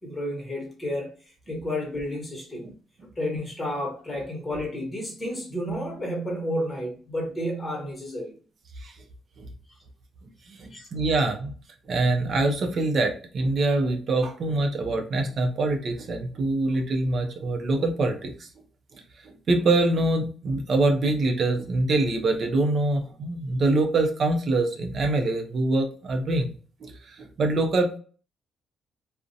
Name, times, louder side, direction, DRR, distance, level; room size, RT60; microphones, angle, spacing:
voice 1, 0.0-1.1 1.5-2.7 3.2-8.3 10.7-10.9, equal, 20° left, 1.1 m, -31 dB
voice 2, 10.5-11.5 11.9-18.5 18.9-26.5 26.8-28.0, right 2 dB, 55° right, 0.5 m, -25 dB
2.4 x 2.1 x 2.6 m
cardioid pair, 90°, 0 cm